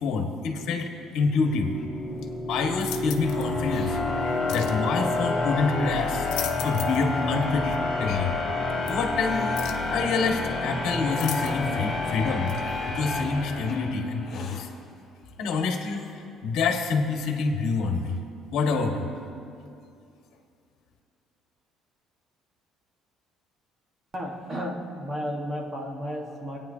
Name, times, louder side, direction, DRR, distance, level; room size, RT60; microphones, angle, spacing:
voice 1, 0.0-1.7 2.5-4.0 4.2-6.3 6.6-8.3 8.9-9.5 9.9-12.5 12.9-14.7 15.4-16.0 16.4-18.2 18.5-19.1, left 4 dB, 60° left, 2 dB, 1.5 m, -27 dB
Hiss, 0.8-2.5 3.4-4.0 5.0-5.1 5.9-6.0 6.5-7.5 8.4-9.6 10.5-12.0 12.5-12.9 13.6-13.8 14.2-14.7 15.1-15.2 15.4-16.1, left 5 dB, 40° left, 1.4 m, -46 dB
sound 1, 1.4-14.3, left 2 dB, 5° left, 2.5 m, -29 dB
sound 2, 2.8-3.5 4.5-4.8 6.0-7.1 7.4-7.5 8.9-9.0 9.6-9.9 11.2-11.8 12.5-12.6, left 11 dB, 85° left, 0.8 m, -37 dB
voice 2, 24.1-26.6, equal, 25° right, -1 dB, 1.5 m, -33 dB
27.5 x 9.2 x 2.8 m, 2.6 s
cardioid pair, 170°, 0 cm